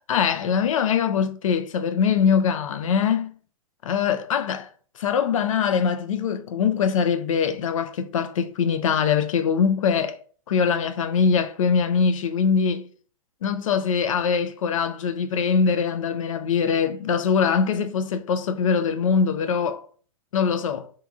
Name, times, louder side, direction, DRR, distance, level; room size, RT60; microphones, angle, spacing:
voice 1, 0.1-3.3 3.8-4.7 5.0-10.2 10.5-12.9 13.4-19.8 20.3-20.9, left 6 dB, 60° left, 0.4 m, -22 dB
2.8 x 2.5 x 2.3 m
figure-of-eight pair, 115°, 19 cm